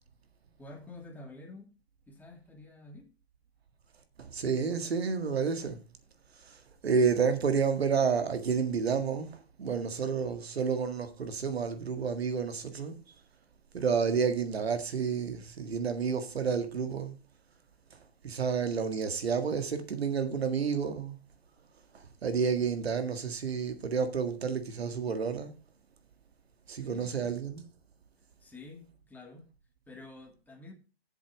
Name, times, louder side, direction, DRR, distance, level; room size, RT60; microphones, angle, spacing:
voice 1, 0.6-1.7 2.1-3.1 26.8-27.4 28.4-29.5 29.9-30.7, left 2 dB, 5° left, 2.1 m, -49 dB
voice 2, 4.2-5.8 6.8-13.0 13.7-17.1 18.2-21.2 22.2-25.5 26.7-27.6, right 6 dB, 75° right, 1.8 m, -30 dB
8.3 x 7.4 x 4.8 m
hypercardioid pair, 125°, 31 cm